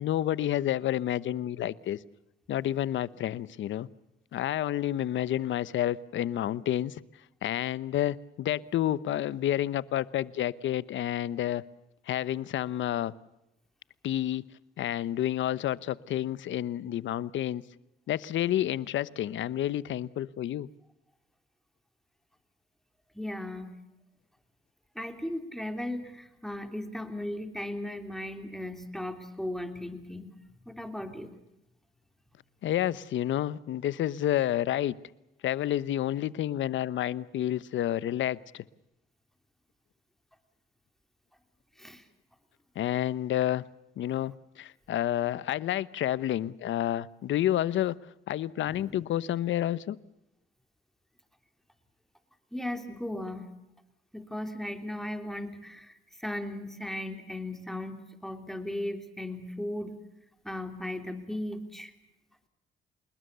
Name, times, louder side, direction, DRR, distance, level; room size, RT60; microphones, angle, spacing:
voice 1, 0.0-2.0 2.5-3.9 4.3-7.0 7.4-11.6 12.1-13.1 14.0-14.4 14.8-17.6 18.1-20.7 32.6-34.9 35.4-38.6 42.7-43.6 44.0-47.9 48.3-50.0, left 12 dB, 75° left, 18 dB, 1.0 m, -29 dB
voice 2, 23.1-23.7 24.9-30.3 30.6-31.3 41.8-42.0 48.7-49.0 52.5-53.5 54.1-60.0 60.4-61.9, left 1 dB, ahead, 7 dB, 3.4 m, -37 dB
27.0 x 21.0 x 6.9 m, 0.88 s
cardioid pair, 90°, 20 cm